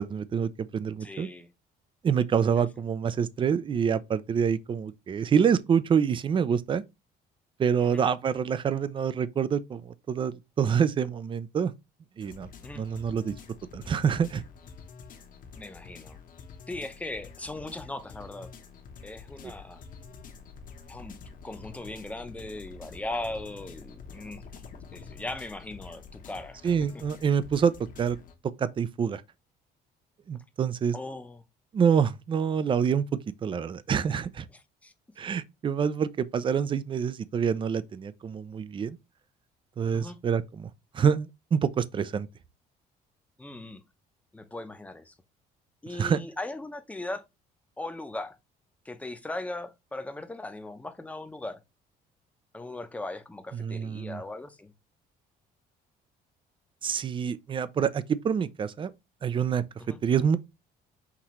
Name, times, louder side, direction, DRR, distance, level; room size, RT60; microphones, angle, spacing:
voice 1, 0.0-1.3 2.0-6.8 7.6-11.7 12.2-12.5 12.8-13.3 13.7-14.4 26.6-27.7 28.0-28.2 28.6-29.2 30.3-31.0 31.7-33.0 33.4-34.5 35.2-39.0 39.8-42.3 46.0-46.2 53.5-54.2 56.8-58.9 59.2-59.6 60.0-60.4, right 7 dB, 30° right, 0.4 m, -26 dB
voice 2, 1.0-1.5 2.6-2.7 7.8-8.0 12.6-12.8 15.6-16.2 16.7-18.5 19.0-19.8 20.9-21.2 21.4-24.5 24.9-26.9 30.9-31.4 34.5-34.9 39.9-40.2 43.4-43.8 44.3-45.1 45.8-47.2 47.8-48.4 48.8-51.6 52.5-54.7 59.8-60.0, left 2 dB, 10° left, 0.7 m, -38 dB
sound 1, 12.2-28.3, left 5 dB, 55° left, 1.0 m, -47 dB
5.8 x 2.8 x 3.0 m
cardioid pair, 110°, 17 cm